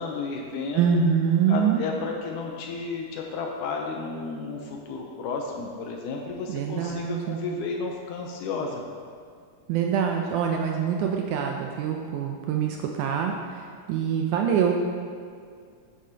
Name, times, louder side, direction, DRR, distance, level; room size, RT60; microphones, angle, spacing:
voice 1, 0.0-1.0 1.5-8.8, left 4 dB, 75° left, 1 dB, 2.1 m, -32 dB
voice 2, 0.7-1.8 6.5-7.4 9.7-13.6 13.9-14.7, right 7 dB, 80° right, 2 dB, 1.8 m, -25 dB
9.2 x 8.3 x 2.8 m, 2.1 s
omnidirectional pair, 3.9 m